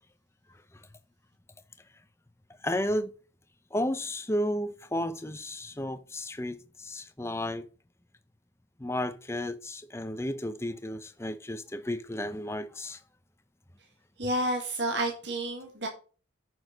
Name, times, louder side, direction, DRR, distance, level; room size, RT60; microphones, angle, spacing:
voice 1, 2.6-3.1 3.7-7.7 8.8-13.0, left 1 dB, 15° left, 0.6 m, -33 dB
voice 2, 14.2-15.9, right 1 dB, 60° right, 1.9 m, -30 dB
9.7 x 6.3 x 3.9 m
head